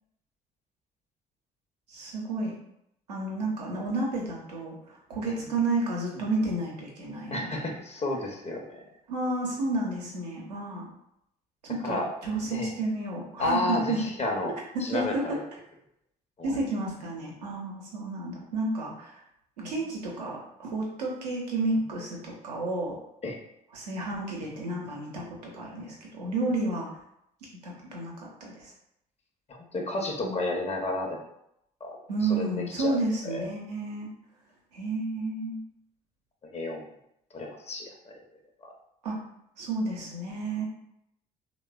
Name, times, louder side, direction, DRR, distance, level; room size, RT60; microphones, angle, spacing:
voice 1, 1.9-2.5 3.1-7.7 9.1-10.9 11.6-14.0 14.7-15.4 16.4-19.2 19.6-23.0 23.7-26.9 27.6-28.7 30.2-30.4 32.1-34.1 34.7-35.6 39.0-39.2 39.6-40.6, right 2 dB, 85° right, -3 dB, 0.6 m, -31 dB
voice 2, 7.3-8.8 11.8-12.1 12.5-12.7 13.4-14.5 14.8-15.4 16.4-16.6 23.2-23.4 29.5-31.2 31.8-32.0 32.3-32.5 32.8-33.5 36.5-36.8 37.3-38.1 38.6-38.7, left 2 dB, 30° left, 1 dB, 0.6 m, -31 dB
3.1 x 2.0 x 2.3 m, 0.77 s
hypercardioid pair, 50°, 20 cm